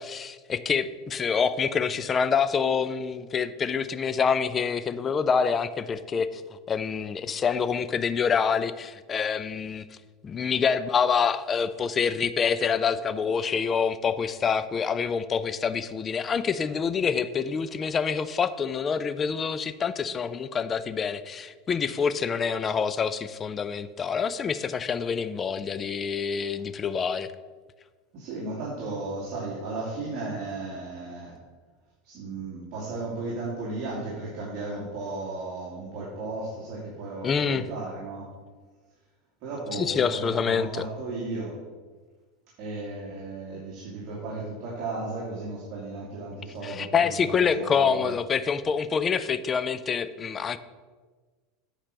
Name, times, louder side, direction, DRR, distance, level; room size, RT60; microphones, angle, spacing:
voice 1, 0.0-6.4 6.7-9.9 10.2-27.3 37.2-37.7 39.7-40.8 46.6-50.6, left 6 dB, 25° left, 14 dB, 0.4 m, -26 dB
voice 2, 28.1-31.3 32.0-38.3 39.4-41.6 42.6-48.1, right 3 dB, 50° right, -6 dB, 2.6 m, -35 dB
9.0 x 4.9 x 6.6 m, 1.4 s
supercardioid pair, 135°, 0 cm